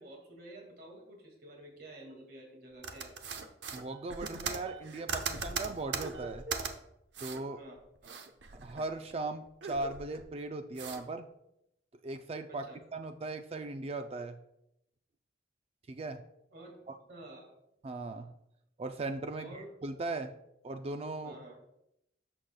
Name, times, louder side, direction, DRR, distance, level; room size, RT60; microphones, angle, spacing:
voice 1, 0.0-3.2 7.6-8.2 12.5-12.8 16.5-16.8 17.1-17.5 19.4-19.7 21.2-21.6, right 1 dB, 60° right, 1 dB, 2.0 m, -50 dB
sound 1, 2.8-6.7 7.1-7.4 7.8-9.1 9.4-10.3 10.8-11.0, right 5 dB, 90° right, 0.8 m, -39 dB
voice 2, 3.7-6.4 7.2-7.6 8.6-11.3 12.0-12.7 12.9-14.4 15.9-16.2 16.9-17.0 17.8-18.3 18.8-20.3 20.6-21.6, right 2 dB, 35° right, 7 dB, 0.4 m, -38 dB
11.5 x 6.4 x 2.2 m, 0.83 s
head